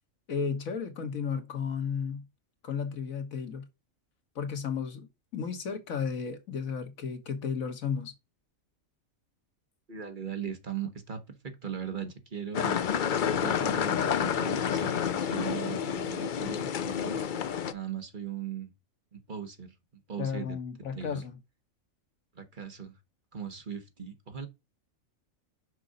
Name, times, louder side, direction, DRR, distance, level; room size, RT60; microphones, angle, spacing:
voice 1, 0.3-2.2 2.6-3.7 4.4-8.1 20.2-21.4, left 6 dB, 85° left, 1.7 m, -33 dB
voice 2, 9.9-12.8 13.2-17.2 17.7-18.7 19.1-19.7 20.1-20.6 20.9-21.2 22.3-22.9 23.3-24.5, right 7 dB, 40° right, 1.4 m, -39 dB
sound 1, 12.5-17.7, left 8 dB, 55° left, 0.5 m, -29 dB
6.3 x 5.3 x 3.9 m
omnidirectional pair, 1.4 m